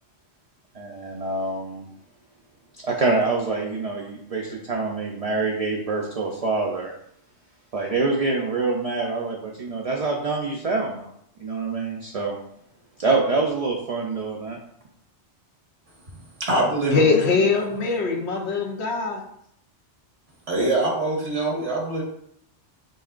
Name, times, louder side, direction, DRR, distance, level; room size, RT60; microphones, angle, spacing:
voice 1, 0.7-1.9 2.8-6.9 7.7-11.1 11.4-12.4 13.0-14.6, right 3 dB, 45° right, -1 dB, 0.5 m, -25 dB
voice 2, 16.4-17.2 20.5-22.0, right 2 dB, 90° right, -2 dB, 1.5 m, -23 dB
voice 3, 16.9-19.2, left 4 dB, 70° left, 1 dB, 1.0 m, -22 dB
5.3 x 3.7 x 2.4 m, 0.70 s
omnidirectional pair, 1.2 m